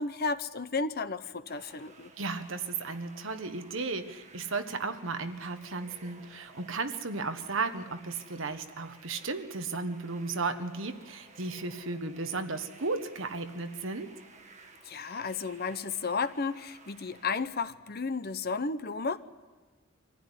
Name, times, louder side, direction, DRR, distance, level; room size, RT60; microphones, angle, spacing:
voice 1, 0.0-2.1 14.8-19.2, left 4 dB, 45° left, 12 dB, 0.9 m, -33 dB
sound 1, 1.5-17.5, right 3 dB, 35° right, 2.0 m, -55 dB
voice 2, 2.2-14.1, right 3 dB, 65° right, 8 dB, 1.4 m, -35 dB
24.5 x 15.5 x 9.9 m, 1.4 s
head